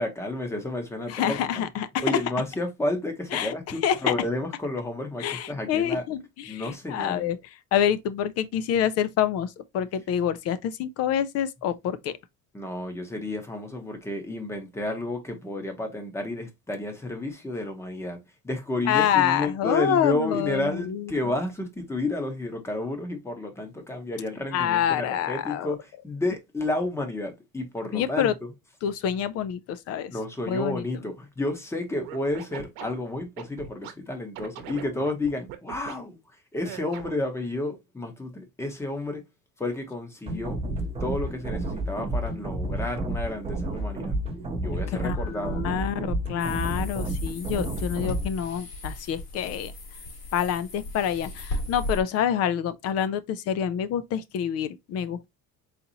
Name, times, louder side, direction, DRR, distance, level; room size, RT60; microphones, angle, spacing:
voice 1, 0.0-1.6 2.0-6.0 6.5-7.3 12.5-18.2 18.4-28.3 30.1-36.2 36.5-39.3 39.6-40.6 41.0-44.2 44.6-45.6, left 2 dB, 5° left, 0.8 m, -31 dB
voice 2, 1.1-2.1 3.3-3.5 3.8-4.1 5.2-7.4 7.7-12.1 18.9-21.1 24.5-25.8 27.9-28.3 28.8-30.2 30.5-30.8 44.9-49.7 50.3-55.3, left 9 dB, 45° left, 0.4 m, -27 dB
Scratching (performance technique), 32.0-33.9 34.3-35.9 36.6-37.3, right 10 dB, 70° right, 0.9 m, -40 dB
sound 1, 40.3-48.3, right 1 dB, 15° right, 0.8 m, -30 dB
sound 2, 46.4-52.0, left 1 dB, 60° left, 2.3 m, -36 dB
4.1 x 3.8 x 2.8 m
cardioid pair, 165°, 36 cm